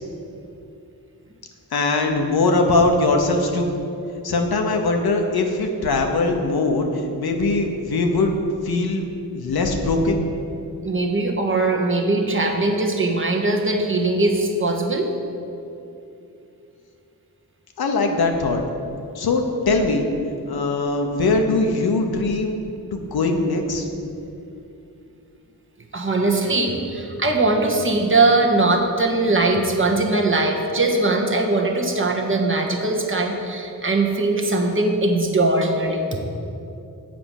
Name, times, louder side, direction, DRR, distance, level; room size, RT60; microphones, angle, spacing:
voice 1, 1.7-3.7 4.2-8.4 8.6-9.1 9.3-10.2 17.8-18.7 19.1-20.1 20.5-22.6 22.9-23.9, left 3 dB, 70° left, 3 dB, 1.0 m, -21 dB
voice 2, 10.8-15.1 25.9-36.2, right 2 dB, 30° right, 1 dB, 1.1 m, -20 dB
7.7 x 4.9 x 7.2 m, 2.7 s
cardioid pair, 70°, 38 cm